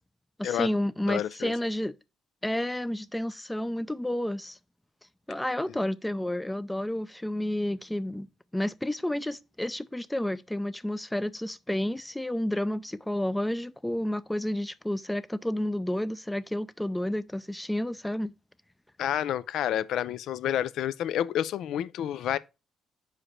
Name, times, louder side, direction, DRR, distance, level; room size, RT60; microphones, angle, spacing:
voice 1, 0.4-1.9 2.4-4.6 5.3-18.3, left 1 dB, 10° left, 0.4 m, -30 dB
voice 2, 1.1-1.5 19.0-22.4, left 11 dB, 80° left, 0.4 m, -29 dB
5.0 x 4.9 x 4.2 m
cardioid pair, 90°, 0 cm